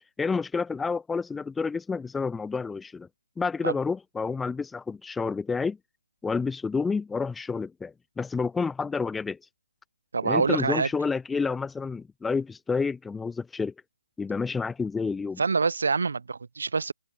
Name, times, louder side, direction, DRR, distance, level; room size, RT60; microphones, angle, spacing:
voice 1, 0.0-3.1 3.4-5.8 6.2-9.4 10.2-13.7 14.2-15.4, left 4 dB, 5° left, 1.1 m, -29 dB
voice 2, 10.1-10.9 15.4-16.9, right 4 dB, 60° right, 2.1 m, -25 dB
figure-of-eight pair, 155°, 0 cm